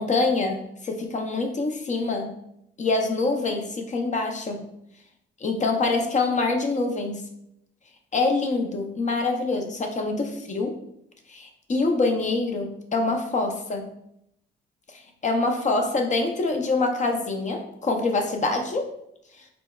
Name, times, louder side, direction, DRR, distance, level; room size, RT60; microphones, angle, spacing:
voice 1, 0.0-2.3 2.8-4.6 5.4-7.2 8.1-10.8 11.3-13.9 15.2-18.9, left 3 dB, 35° left, 3 dB, 0.6 m, -25 dB
3.9 x 3.3 x 2.3 m, 0.77 s
cardioid pair, 90°, 20 cm